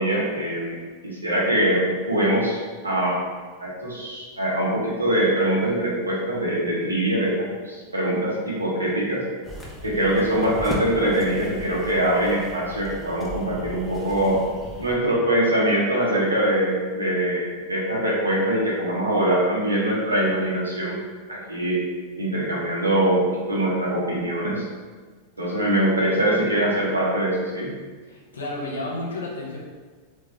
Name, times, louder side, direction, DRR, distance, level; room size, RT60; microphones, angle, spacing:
voice 1, 0.0-3.2 3.6-9.2 9.8-14.4 14.8-21.0 21.3-21.8 22.2-24.7 25.4-27.7, right 1 dB, 80° right, -5 dB, 1.1 m, -23 dB
sound 1, 9.4-15.0, left 1 dB, 5° left, 0.8 m, -37 dB
voice 2, 28.1-29.6, left 2 dB, 70° left, -3 dB, 1.0 m, -31 dB
3.6 x 3.5 x 3.3 m, 1.4 s
figure-of-eight pair, 90°, 0 cm